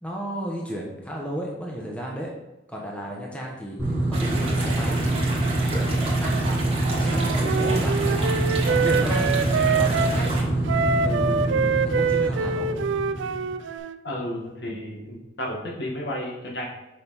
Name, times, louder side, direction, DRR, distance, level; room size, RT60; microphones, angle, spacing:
voice 1, 0.0-2.3 2.7-5.2 6.2-6.3 7.0-8.0 8.8-9.3 9.7-10.3 11.0-12.7, equal, 5° left, -2 dB, 1.0 m, -33 dB
sound 1, 3.8-13.6, right 2 dB, 10° right, 1.7 m, -25 dB
sound 2, 4.1-10.4, right 2 dB, 30° right, 1.5 m, -32 dB
Wind instrument woodwind instrument, 7.0-10.2 10.7-14.0, right 5 dB, 90° right, 0.4 m, -25 dB
voice 2, 14.0-16.7, left 1 dB, 65° left, -2 dB, 1.8 m, -32 dB
6.6 x 5.2 x 4.2 m, 1.0 s
head